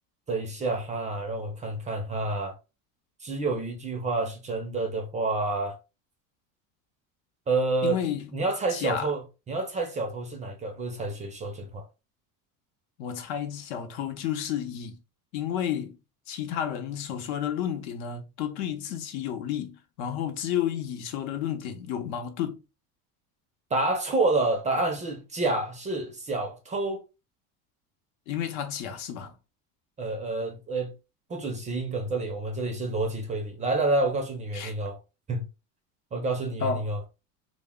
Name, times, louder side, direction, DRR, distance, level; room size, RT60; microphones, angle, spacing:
voice 1, 0.3-2.6 3.2-5.8 7.5-8.0 8.3-11.9 23.7-27.0 30.0-30.9 31.3-35.0 35.3-35.4 36.1-37.0, right 2 dB, 20° right, 0.4 m, -28 dB
voice 2, 7.8-8.3 8.7-9.1 13.0-15.0 15.3-16.0 16.3-22.6 28.3-29.3 34.5-34.7 36.6-36.9, left 9 dB, 80° left, 0.8 m, -31 dB
2.1 x 2.1 x 3.5 m
cardioid pair, 130°, 41 cm